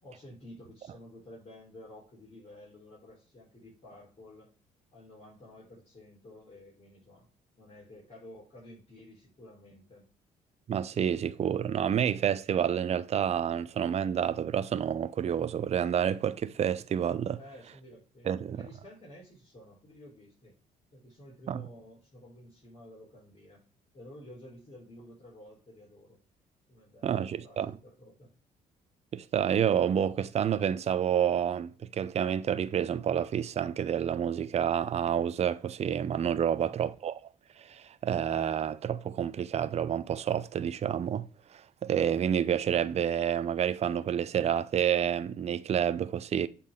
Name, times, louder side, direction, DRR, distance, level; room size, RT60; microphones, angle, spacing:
voice 1, 0.0-4.5 4.9-7.3 7.6-10.1 17.3-20.6 20.9-23.6 23.9-26.2 26.7-28.3 36.5-36.8, left 1 dB, 40° left, 3.5 m, -52 dB
voice 2, 10.7-17.4 18.3-18.7 21.5-21.6 27.0-27.7 29.1-37.2 37.6-41.3 41.5-46.5, right 9 dB, 40° right, 0.5 m, -29 dB
7.2 x 4.2 x 3.6 m
supercardioid pair, 70°, 16 cm